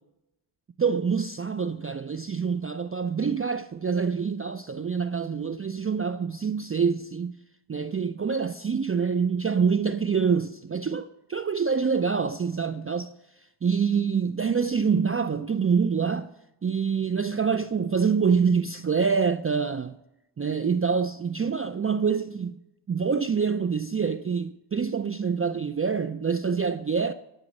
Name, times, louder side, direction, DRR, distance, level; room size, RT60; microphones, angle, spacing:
voice 1, 0.8-7.3 7.7-13.1 13.6-16.3 16.6-19.9 20.4-22.6 22.9-27.1, right 6 dB, 30° right, 0.4 m, -26 dB
11.5 x 7.2 x 5.2 m
cardioid pair, 45°, 50 cm